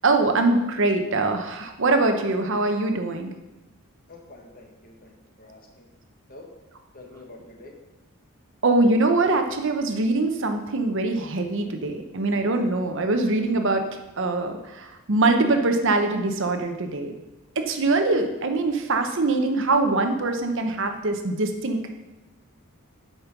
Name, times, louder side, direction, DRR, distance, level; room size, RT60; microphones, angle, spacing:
voice 1, 0.0-3.3 8.6-13.8 14.2-17.1 17.6-21.8, right 2 dB, 60° right, 6 dB, 0.9 m, -23 dB
voice 2, 4.1-5.9 6.3-6.5 6.9-7.7 18.1-18.2, left 2 dB, 40° left, 2 dB, 1.4 m, -46 dB
8.5 x 5.2 x 5.9 m, 1.0 s
head